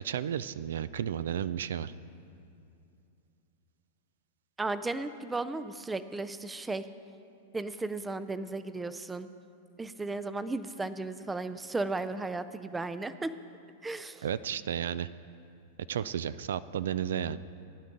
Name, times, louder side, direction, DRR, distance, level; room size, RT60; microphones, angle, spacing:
voice 1, 0.0-1.9 14.2-15.1 15.9-17.4, right 9 dB, 85° right, 16 dB, 0.3 m, -33 dB
voice 2, 4.6-6.9 7.5-9.3 9.8-13.3 13.8-14.2, right 3 dB, 10° right, 13 dB, 0.4 m, -35 dB
16.0 x 9.9 x 3.8 m, 2.6 s
hypercardioid pair, 130°, 0 cm